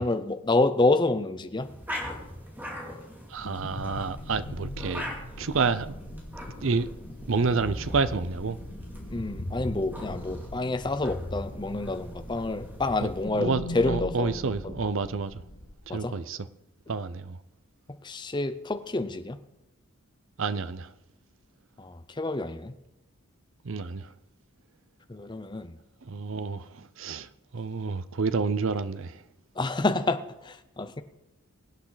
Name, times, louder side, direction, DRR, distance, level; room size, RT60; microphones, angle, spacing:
voice 1, 0.0-1.7 9.1-14.4 15.9-16.1 18.0-19.4 21.8-22.7 25.1-25.8 29.6-31.0, left 2 dB, 20° left, 0.6 m, -28 dB
sound 1, 1.5-13.3, equal, 10° right, 2.6 m, -42 dB
voice 2, 3.3-5.1 5.4-5.9 6.6-6.9 7.3-8.6 13.0-13.1 13.3-15.4 15.9-16.4 16.9-17.4 20.4-20.9 23.6-24.1 26.0-29.2, right 4 dB, 60° right, 0.6 m, -29 dB
sound 2, 3.4-15.7, left 1 dB, 60° left, 1.5 m, -39 dB
23.0 x 8.7 x 4.0 m
head